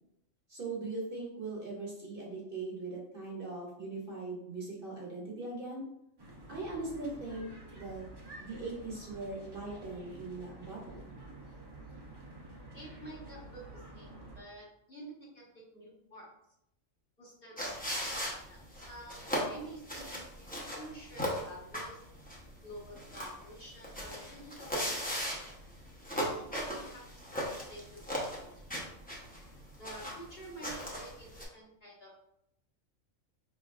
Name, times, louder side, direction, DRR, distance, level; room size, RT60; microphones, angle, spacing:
voice 1, 0.5-5.8 6.5-8.1 8.4-11.1, right 3 dB, 45° right, -3 dB, 1.1 m, -40 dB
sound 1, 6.2-14.4, right 2 dB, 30° right, 0.4 m, -50 dB
voice 2, 12.7-16.3 17.2-22.0 22.6-25.3 26.2-28.2 28.4-28.9 29.8-32.2, right 1 dB, 50° left, -7 dB, 1.6 m, -50 dB
sound 2, 17.6-31.4, equal, 10° left, 0.7 m, -38 dB
5.0 x 3.2 x 2.4 m, 0.78 s
omnidirectional pair, 1.3 m